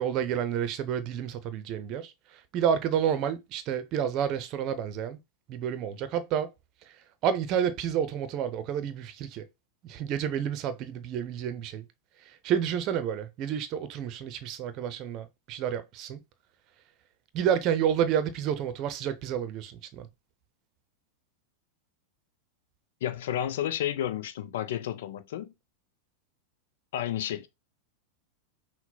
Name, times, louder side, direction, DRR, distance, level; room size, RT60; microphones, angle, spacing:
voice 1, 0.0-5.2 5.5-6.5 7.2-9.5 9.8-11.8 12.3-16.2 17.3-20.1, right 9 dB, 40° right, 0.7 m, -30 dB
voice 2, 23.0-25.5 26.9-27.5, left 11 dB, 55° left, 0.6 m, -31 dB
5.9 x 2.2 x 4.0 m
figure-of-eight pair, 90°, 0 cm